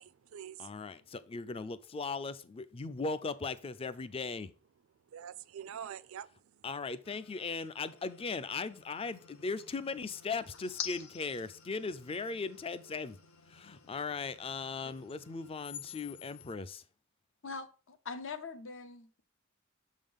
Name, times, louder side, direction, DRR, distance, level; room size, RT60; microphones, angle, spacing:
voice 1, 0.0-0.8 5.1-6.7, right 9 dB, 70° right, 0.4 m, -46 dB
voice 2, 0.6-4.5 6.6-13.2 13.5-16.8, left 4 dB, 25° left, 0.4 m, -38 dB
sound 1, 7.0-16.5, left 8 dB, 90° left, 0.8 m, -49 dB
voice 3, 17.4-19.2, left 4 dB, 65° left, 0.8 m, -43 dB
7.1 x 3.7 x 5.2 m
head